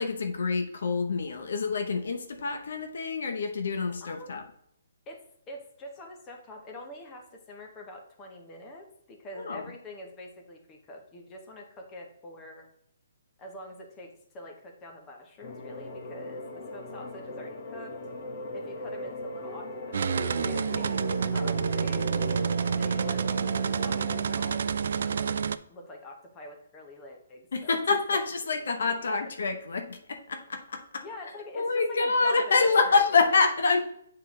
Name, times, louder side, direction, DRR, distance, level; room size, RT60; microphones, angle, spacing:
voice 1, 0.0-4.4 9.4-9.7 27.5-31.0 31.6-33.8, left 4 dB, 70° left, 6 dB, 0.8 m, -26 dB
voice 2, 4.0-4.3 5.1-12.7 13.4-17.9 18.5-22.1 22.7-23.4 23.7-25.3 25.7-27.8 28.1-28.2 28.8-29.3 31.0-33.3, left 1 dB, 15° left, 2 dB, 1.0 m, -45 dB
sound 1, 15.4-24.4, left 2 dB, 40° left, 1.1 m, -38 dB
sound 2, 19.9-25.6, right 6 dB, 60° right, 0.3 m, -28 dB
7.8 x 3.8 x 3.7 m, 0.72 s
hypercardioid pair, 160°, 0 cm